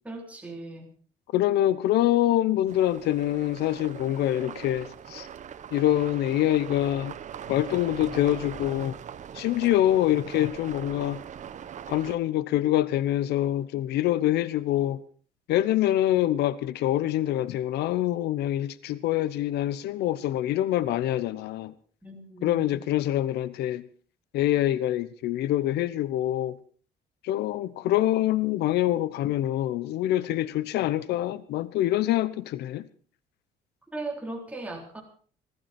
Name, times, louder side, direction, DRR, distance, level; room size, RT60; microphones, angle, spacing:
voice 1, 0.0-0.9 22.0-22.8 33.9-35.0, right 2 dB, 10° right, 3.8 m, -37 dB
voice 2, 1.3-5.3 5.7-7.1 7.5-9.0 9.3-11.2 11.9-15.0 15.5-21.7 22.4-23.8 24.3-26.6 27.2-32.9, left 13 dB, 80° left, 0.9 m, -25 dB
sound 1, 2.7-12.2, right 8 dB, 45° right, 1.1 m, -41 dB
21.0 x 14.5 x 4.4 m
cardioid pair, 110°, 17 cm